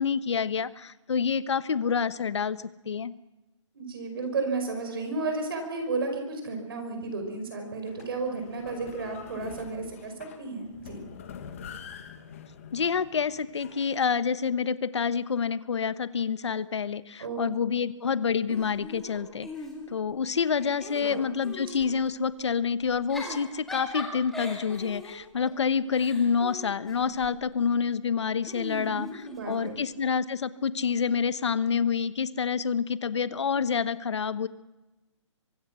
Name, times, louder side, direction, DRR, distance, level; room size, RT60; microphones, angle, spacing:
voice 1, 0.0-3.1 12.7-19.5 19.9-34.5, left 6 dB, 60° left, 15 dB, 1.1 m, -28 dB
voice 2, 3.7-10.1 10.4-11.0 17.2-17.5 21.0-21.2 28.9-29.8, right 3 dB, 45° right, 5 dB, 5.4 m, -33 dB
sound 1, 7.9-14.1, left 7 dB, 25° left, 1.6 m, -46 dB
Giggle / Chuckle chortle, 18.5-20.1 20.5-21.9 22.9-27.4 28.4-29.8, left 2 dB, ahead, 1.9 m, -40 dB
24.0 x 21.0 x 6.2 m, 1.1 s
hypercardioid pair, 180°, 16 cm